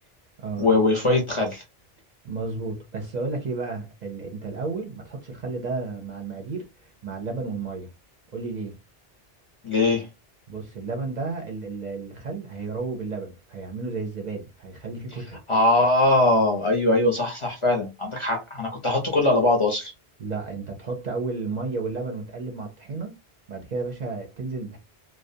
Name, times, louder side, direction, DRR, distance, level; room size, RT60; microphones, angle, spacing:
voice 1, 0.6-1.6 9.6-10.1 15.5-19.9, left 2 dB, 35° left, 0.6 m, -21 dB
voice 2, 2.2-7.9 8.3-8.8 10.5-15.4 20.2-23.1 23.5-24.8, right 3 dB, 50° right, 0.6 m, -32 dB
2.4 x 2.1 x 2.6 m
omnidirectional pair, 1.0 m